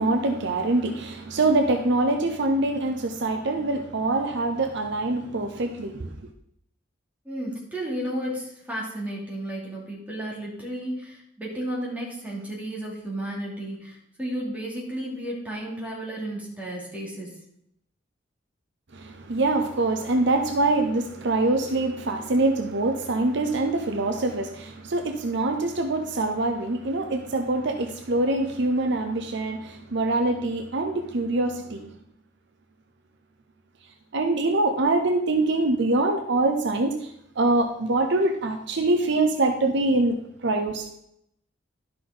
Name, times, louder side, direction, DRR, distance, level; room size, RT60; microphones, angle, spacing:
voice 1, 0.0-6.1 18.9-31.9 34.1-40.1 40.4-40.9, right 2 dB, 65° right, 0.8 m, -24 dB
voice 2, 7.2-17.4, right 1 dB, 10° right, 2.8 m, -33 dB
12.5 x 5.8 x 3.9 m
head